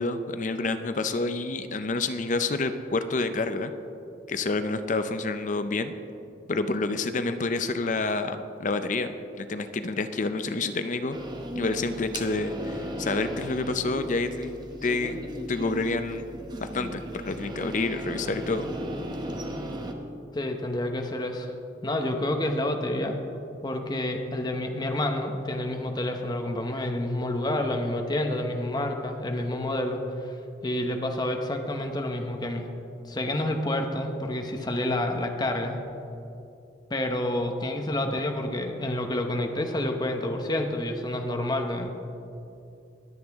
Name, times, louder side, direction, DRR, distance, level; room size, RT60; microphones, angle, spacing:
voice 1, 0.0-3.7 4.3-5.9 6.5-11.2 11.5-14.5 14.8-15.2 15.5-16.2 16.6-18.7, left 3 dB, 45° left, 9 dB, 0.5 m, -28 dB
sound 1, 11.1-19.9, equal, 25° right, 0.9 m, -36 dB
voice 2, 20.3-21.5 21.8-23.2 23.6-30.0 30.6-32.7 33.1-35.8 36.9-42.1, left 1 dB, 25° left, 4 dB, 0.9 m, -29 dB
21.5 x 7.9 x 3.5 m, 2.8 s
head